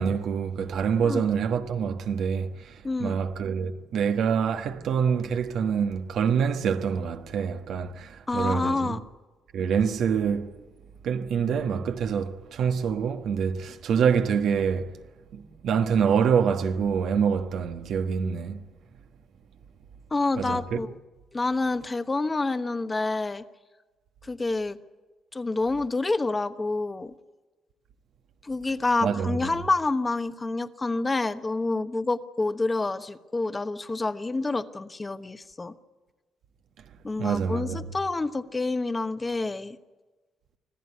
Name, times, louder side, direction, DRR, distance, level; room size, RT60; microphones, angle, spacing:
voice 1, 0.0-9.0 9.5-10.5 11.0-15.0 15.3-18.6 20.3-20.8 29.0-29.7 37.2-37.9, right 7 dB, 70° right, 1.4 m, -26 dB
voice 2, 2.8-3.2 8.3-9.0 20.1-20.9 21.3-23.4 24.2-24.8 25.3-27.1 28.4-35.7 37.0-39.8, left 3 dB, 25° left, 1.0 m, -28 dB
25.5 x 15.0 x 9.6 m
cardioid pair, 90°, 0 cm